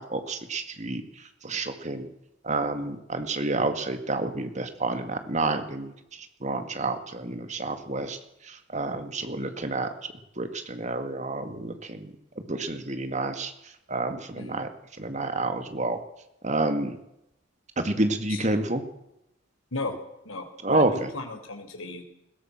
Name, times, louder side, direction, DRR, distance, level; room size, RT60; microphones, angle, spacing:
voice 1, 0.0-2.1 2.4-8.2 8.4-9.9 10.4-13.5 13.9-14.7 15.0-16.0 16.4-17.0 17.8-18.8 20.6-21.1, right 2 dB, 35° right, 7 dB, 2.2 m, -29 dB
voice 2, 14.4-14.7 18.3-18.4 19.7-20.0 20.2-22.0, left 2 dB, 85° left, 4 dB, 4.4 m, -35 dB
21.5 x 16.5 x 7.5 m, 0.84 s
head